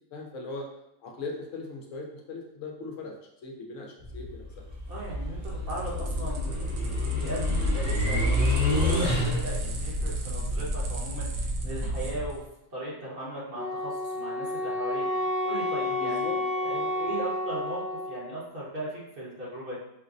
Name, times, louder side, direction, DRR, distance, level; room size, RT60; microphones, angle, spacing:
voice 1, 0.1-0.7 1.0-3.1 3.4-4.6 16.0-16.4 16.7-16.9, left 3 dB, 70° left, 0 dB, 0.9 m, -39 dB
sound 1, 4.0-9.7, left 1 dB, 25° right, 0.8 m, -28 dB
sound 2, 4.8-12.4, equal, 70° right, 0.9 m, -32 dB
voice 2, 4.9-12.4 12.7-19.8, right 1 dB, 45° right, -6 dB, 1.0 m, -38 dB
Wind instrument woodwind instrument, 13.5-18.3, left 1 dB, 10° left, 0.7 m, -30 dB
4.7 x 2.0 x 2.5 m, 0.80 s
omnidirectional pair, 1.4 m